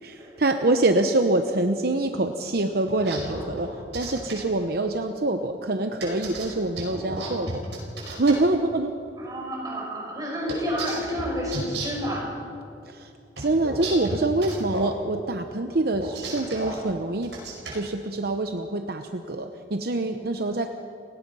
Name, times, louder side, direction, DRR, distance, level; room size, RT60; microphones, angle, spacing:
voice 1, 0.0-7.6 8.1-9.0 12.9-13.1 13.4-17.3 17.7-20.7, right 2 dB, 55° right, 6 dB, 0.9 m, -25 dB
sound 1, 2.9-4.4 6.0-8.4 10.5-12.1 13.4-14.9 15.9-16.8 17.2-17.8, right 2 dB, 75° right, 5.6 m, -33 dB
voice 2, 9.2-12.3, equal, 20° right, -3 dB, 6.4 m, -30 dB
29.5 x 18.0 x 5.5 m, 2.7 s
head